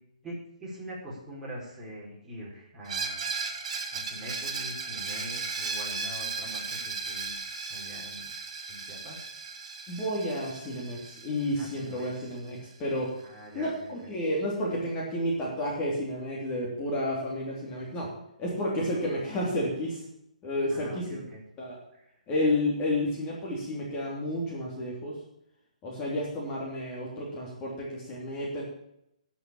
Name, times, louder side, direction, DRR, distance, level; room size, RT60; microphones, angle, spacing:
voice 1, 0.2-3.3 3.9-7.4 7.7-8.3 8.7-9.3 11.6-12.3 13.2-13.9 20.7-21.4 21.9-22.2, equal, 10° right, -6 dB, 4.5 m, -43 dB
Screech, 2.8-12.5, right 4 dB, 55° right, 2.6 m, -36 dB
voice 2, 9.9-13.1 13.5-18.1 18.4-20.0 20.4-21.2 21.6-21.8 22.3-25.2 25.8-28.6, left 1 dB, 25° left, -4 dB, 3.1 m, -31 dB
12.5 x 6.2 x 8.7 m, 0.79 s
hypercardioid pair, 140°, 4 cm